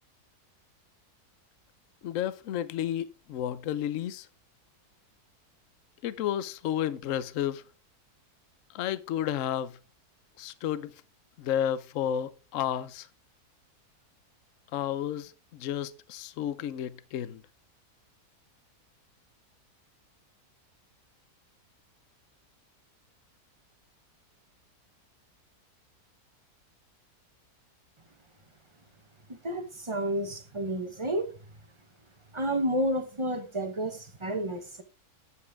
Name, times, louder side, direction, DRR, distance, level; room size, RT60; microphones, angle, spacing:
voice 1, 2.0-4.3 6.0-7.6 8.7-9.8 10.4-10.9 11.4-13.1 14.7-17.4, left 10 dB, 65° left, 1.0 m, -32 dB
voice 2, 29.4-31.3 32.3-34.8, right 1 dB, 25° right, 0.9 m, -30 dB
9.7 x 7.5 x 3.5 m
omnidirectional pair, 1.7 m